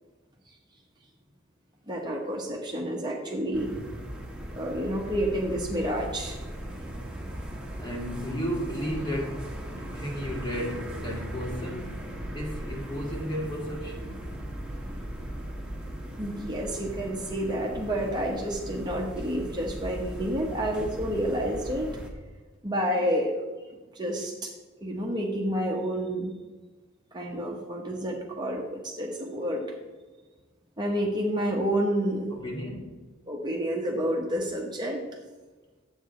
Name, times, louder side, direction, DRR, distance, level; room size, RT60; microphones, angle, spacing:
voice 1, 1.9-3.7 4.5-6.4 16.2-21.9 22.6-23.5 23.9-24.5 24.8-26.3 27.1-29.7 30.8-32.4 33.3-35.1, equal, 20° right, -1 dB, 1.0 m, -29 dB
sound 1, 3.5-22.1, equal, 5° right, 1.2 m, -38 dB
voice 2, 7.8-14.3 32.3-33.0, equal, 25° left, -1 dB, 1.9 m, -34 dB
10.0 x 8.1 x 3.8 m, 1.3 s
head